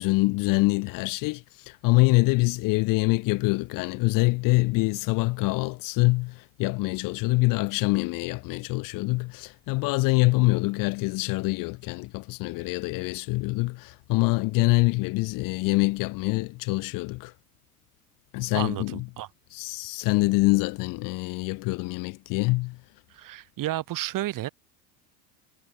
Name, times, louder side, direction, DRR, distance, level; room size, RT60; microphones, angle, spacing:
voice 1, 0.0-17.3 18.3-19.0 19.5-22.8, left 24 dB, 45° left, 0.7 m, -25 dB
voice 2, 18.5-19.3 23.1-24.5, right 14 dB, 45° right, 2.5 m, -32 dB
hypercardioid pair, 90°, 46 cm